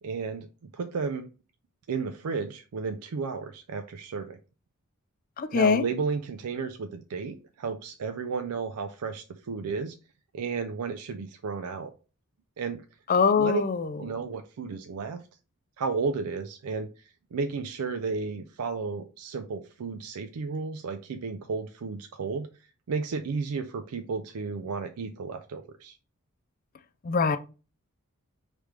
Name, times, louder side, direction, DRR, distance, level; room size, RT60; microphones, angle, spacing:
voice 1, 0.0-1.3 1.9-4.4 5.5-10.0 10.3-11.9 12.6-12.8 13.4-13.6 14.0-15.2 15.8-22.5 22.9-26.0, right 4 dB, 85° right, 0.4 m, -33 dB
voice 2, 5.4-5.8 13.1-14.0 27.0-27.4, left 5 dB, 40° left, 0.4 m, -23 dB
5.0 x 3.2 x 3.2 m
head